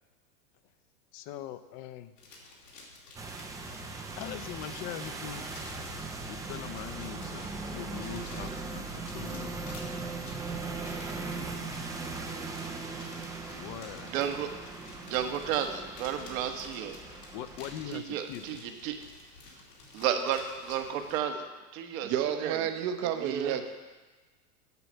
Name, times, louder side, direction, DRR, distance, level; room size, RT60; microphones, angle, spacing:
voice 1, 1.1-2.1 4.2-9.7 11.3-12.0 13.5-14.1 17.3-18.6, left 11 dB, 40° left, 11 dB, 0.6 m, -42 dB
sound 1, 2.2-21.2, left 3 dB, 90° left, 2.6 m, -51 dB
sound 2, 3.2-17.9, right 3 dB, 10° right, 0.4 m, -39 dB
voice 2, 14.0-14.5 15.0-17.0 17.9-19.0 19.9-22.1 22.4-22.7 23.2-23.6, right 9 dB, 60° right, 6 dB, 1.3 m, -32 dB
voice 3, 22.0-23.7, right 9 dB, 35° right, 7 dB, 0.8 m, -31 dB
8.2 x 7.0 x 5.5 m, 1.3 s
hypercardioid pair, 105°, 47 cm